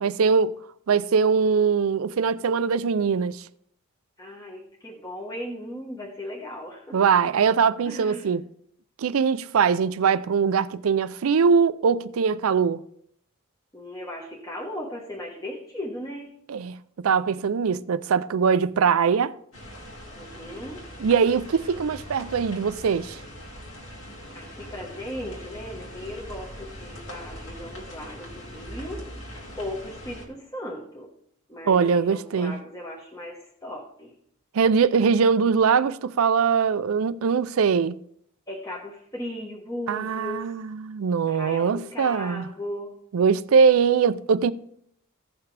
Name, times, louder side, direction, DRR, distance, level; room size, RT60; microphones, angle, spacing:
voice 1, 0.0-0.6 0.9-3.4 6.9-8.4 9.0-12.8 16.5-19.3 21.0-23.2 31.7-32.6 34.5-38.0 39.9-42.4 43.1-44.5, right 6 dB, 75° right, 0.4 m, -22 dB
voice 2, 4.2-7.0 7.8-8.3 13.7-16.3 20.2-20.8 24.3-29.1 29.6-31.1 31.5-34.1 38.5-40.5 41.3-43.0, left 1 dB, 15° left, 1.2 m, -37 dB
sound 1, 19.5-30.3, equal, 65° left, 2.2 m, -41 dB
16.0 x 5.9 x 3.3 m
head